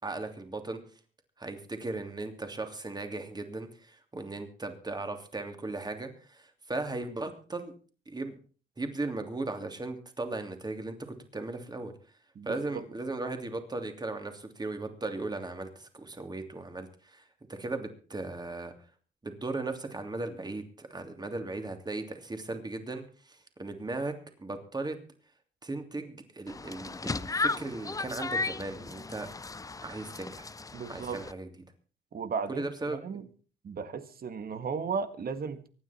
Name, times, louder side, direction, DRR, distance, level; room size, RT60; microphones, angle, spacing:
voice 1, 0.0-0.8 1.4-7.7 8.1-8.4 8.8-11.9 12.4-18.7 19.2-25.0 25.6-29.3 29.8-30.5 30.9-31.5 32.5-33.2, right 2 dB, 20° right, 2.9 m, -37 dB
sound 1, 26.5-31.3, left 3 dB, 15° left, 0.6 m, -35 dB
voice 2, 30.7-31.2 32.1-33.3 33.6-35.7, right 5 dB, 50° right, 1.8 m, -35 dB
24.5 x 9.6 x 4.4 m
cardioid pair, 90°, 20 cm